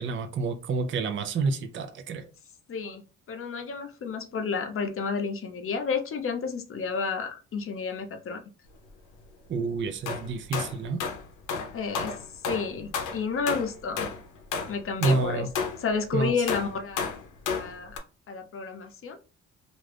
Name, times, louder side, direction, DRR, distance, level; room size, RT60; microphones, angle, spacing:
voice 1, 0.0-2.3 9.5-11.0 15.0-15.5 16.1-16.3, right 4 dB, 40° right, 0.5 m, -28 dB
voice 2, 2.7-8.4 11.7-12.1 12.5-14.1 14.7-15.5 15.8-17.1 17.5-18.0 18.3-19.2, left 5 dB, 45° left, 0.7 m, -31 dB
sound 1, 10.1-15.9 16.5-18.0, left 5 dB, 85° left, 0.7 m, -32 dB
2.5 x 2.3 x 3.3 m
cardioid pair, 90°, 30 cm